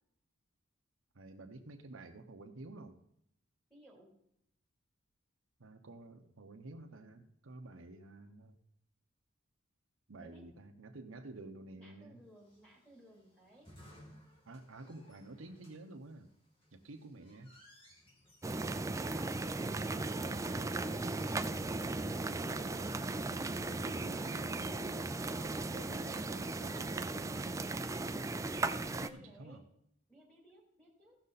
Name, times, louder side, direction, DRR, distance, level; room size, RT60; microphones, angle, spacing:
voice 1, 1.1-3.0 5.6-8.6 10.1-12.2 14.5-16.3 16.7-17.5 21.8-25.4 25.7-27.7 29.0-29.6, right 2 dB, 75° right, 5 dB, 0.9 m, -51 dB
voice 2, 3.7-4.2 10.2-10.4 11.8-13.7 17.3-17.4 28.9-29.7 30.1-31.2, right 1 dB, 5° left, -2 dB, 3.1 m, -59 dB
sound 1, 12.4-26.7, equal, 25° left, 2.6 m, -60 dB
sound 2, 18.4-29.1, right 2 dB, 15° right, 0.4 m, -37 dB
16.0 x 6.6 x 4.1 m, 0.74 s
head